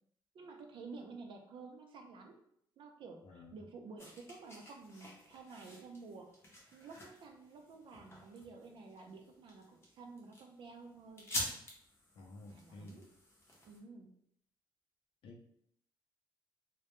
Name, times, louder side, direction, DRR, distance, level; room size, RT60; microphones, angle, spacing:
voice 1, 0.3-2.4 2.8-6.3 6.7-11.3 12.5-13.1 13.6-14.1, right 4 dB, 65° right, 3 dB, 0.4 m, -51 dB
sound 1, 4.0-13.8, left 1 dB, 25° left, 0.6 m, -47 dB
voice 2, 12.2-13.0 15.2-15.4, left 2 dB, 75° left, 2 dB, 0.5 m, -52 dB
2.2 x 2.0 x 3.0 m, 0.69 s
cardioid pair, 135°, 9 cm